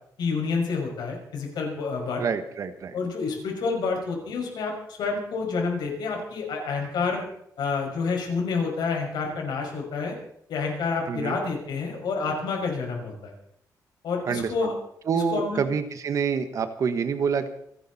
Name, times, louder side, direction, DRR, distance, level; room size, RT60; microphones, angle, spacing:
voice 1, 0.2-2.2 2.9-4.7 5.0-7.2 7.6-10.1 10.5-13.3 14.0-14.8 15.1-15.6, left 4 dB, 80° left, 1 dB, 5.9 m, -28 dB
voice 2, 2.2-3.0 11.1-11.4 14.2-14.7 15.1-17.5, right 6 dB, 50° right, 10 dB, 1.4 m, -27 dB
28.0 x 11.5 x 4.2 m, 0.71 s
wide cardioid pair, 170°, 7 cm